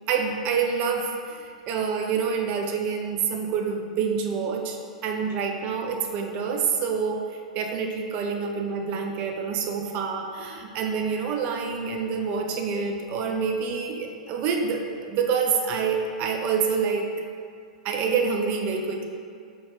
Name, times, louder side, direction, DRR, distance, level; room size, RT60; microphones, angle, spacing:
voice 1, 0.1-7.2 7.5-17.1 17.8-19.1, right 6 dB, 35° right, 2 dB, 0.5 m, -27 dB
5.2 x 4.2 x 2.3 m, 2.3 s
figure-of-eight pair, 100°, 4 cm